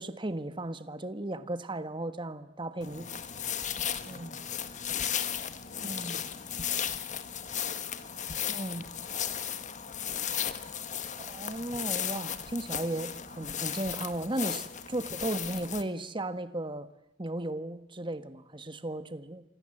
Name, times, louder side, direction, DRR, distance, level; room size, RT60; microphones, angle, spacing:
voice 1, 0.0-3.1 4.1-4.4 5.8-6.2 8.5-8.8 11.3-16.9 17.2-19.4, right 1 dB, 25° right, 11 dB, 1.5 m, -35 dB
sound 1, 2.8-15.8, left 9 dB, 35° left, 1.5 m, -35 dB
voice 2, 2.9-11.4 14.9-15.5, left 1 dB, 55° left, -2 dB, 7.7 m, -59 dB
29.0 x 26.0 x 7.8 m, 0.88 s
head